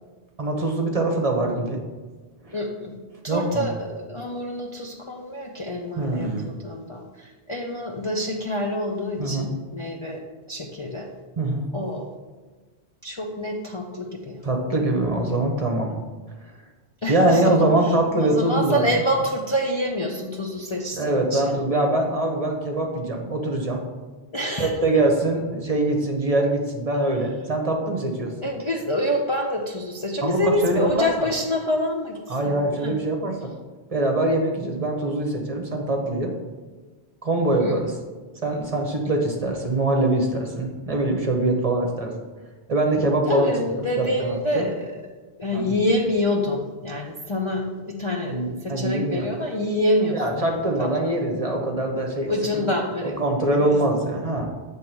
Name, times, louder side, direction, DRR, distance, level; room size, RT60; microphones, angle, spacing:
voice 1, 0.4-1.8 2.4-2.6 3.3-3.7 5.9-6.5 9.2-9.5 11.4-11.7 14.4-15.9 17.1-19.0 20.9-23.8 24.6-28.3 30.2-31.3 32.3-33.4 33.9-36.3 37.2-37.9 38.4-42.1 42.7-44.7 45.5-45.7 48.3-49.3 50.1-52.3 53.0-54.5, right 2 dB, 35° right, 1 dB, 1.0 m, -23 dB
voice 2, 2.5-3.0 3.2-10.2 10.5-11.1 11.7-12.0 13.0-14.4 17.0-17.9 18.2-21.6 24.3-24.7 28.4-32.2 32.4-32.6 32.8-33.0 37.6-37.8 42.9-44.9 45.4-51.2 52.3-53.1 53.6-53.7, left 1 dB, 35° left, -1 dB, 0.6 m, -26 dB
8.3 x 3.5 x 6.0 m, 1.3 s
omnidirectional pair, 1.1 m